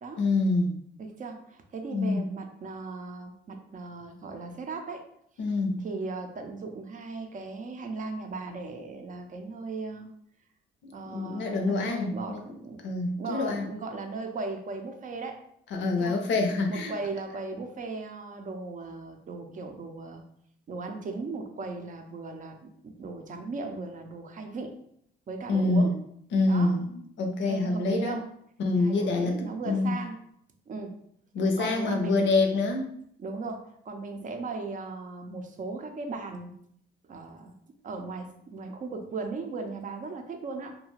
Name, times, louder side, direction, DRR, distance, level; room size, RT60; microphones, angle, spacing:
voice 1, 0.2-0.7 1.9-2.2 5.4-5.8 11.1-12.4 12.8-13.7 15.7-16.9 25.5-25.9 26.3-28.1 28.6-29.9 31.3-32.9, left 3 dB, 70° left, 3 dB, 0.5 m, -26 dB
voice 2, 1.0-5.1 5.8-10.1 10.9-12.8 13.2-15.4 16.0-16.2 16.7-20.2 20.7-24.8 25.3-25.9 26.5-26.8 27.4-28.3 28.8-30.2 30.7-31.0 31.6-32.3 33.2-36.5 37.1-37.5 37.8-40.8, right 3 dB, 40° right, 5 dB, 0.5 m, -37 dB
2.4 x 2.2 x 3.0 m, 0.69 s
cardioid pair, 90°, 20 cm